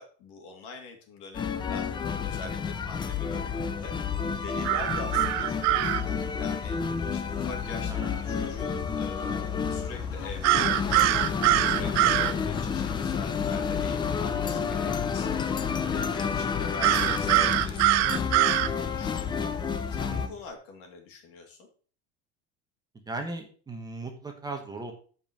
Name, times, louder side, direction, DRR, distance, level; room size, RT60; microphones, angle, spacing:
voice 1, 0.0-1.9 2.2-6.8 7.1-11.3 11.6-19.5 19.9-21.7, left 4 dB, 75° left, 3 dB, 2.9 m, -44 dB
sound 1, 1.3-20.3, left 6 dB, 15° left, 0.4 m, -30 dB
sound 2, 4.6-6.0 10.4-12.3 16.8-18.7, right 17 dB, 55° right, 0.5 m, -23 dB
voice 2, 7.9-8.2 11.7-11.9 15.8-16.0 20.1-20.4 23.1-24.9, right 3 dB, 10° right, 3 dB, 1.1 m, -38 dB
sound 3, 10.0-16.0, left 9 dB, 90° left, 1.7 m, -42 dB
8.1 x 5.4 x 6.2 m, 0.42 s
cardioid pair, 175°, 34 cm